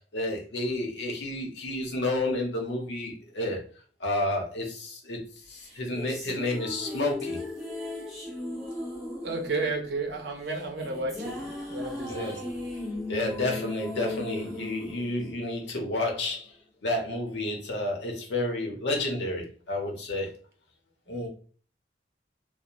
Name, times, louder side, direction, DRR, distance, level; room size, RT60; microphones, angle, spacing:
voice 1, 0.1-3.6 4.0-5.2 5.5-7.4 12.1-12.4 13.1-16.5 16.8-20.4 21.1-21.3, left 1 dB, 75° left, 1 dB, 0.7 m, -30 dB
sound 1, 5.6-16.0, left 2 dB, ahead, 0.9 m, -37 dB
voice 2, 9.2-12.4, right 3 dB, 75° right, 3 dB, 0.6 m, -32 dB
2.5 x 2.0 x 2.9 m, 0.41 s
head